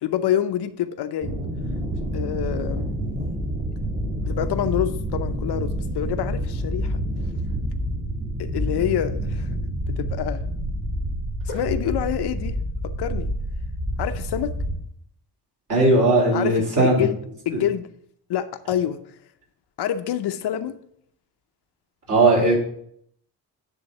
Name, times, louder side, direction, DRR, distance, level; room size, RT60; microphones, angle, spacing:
voice 1, 0.0-1.4 2.1-2.9 4.2-7.0 8.4-9.5 9.9-10.4 11.5-12.6 12.8-13.3 14.0-14.5 16.3-17.1 17.5-17.9 18.3-19.0 19.8-20.7, left 10 dB, 70° left, 9 dB, 0.7 m, -26 dB
sound 1, 1.2-14.7, equal, 25° right, 2.9 m, -28 dB
voice 2, 15.7-17.1 22.1-22.5, right 2 dB, 45° right, -3 dB, 3.4 m, -18 dB
10.0 x 3.8 x 6.5 m, 0.69 s
cardioid pair, 145°, 42 cm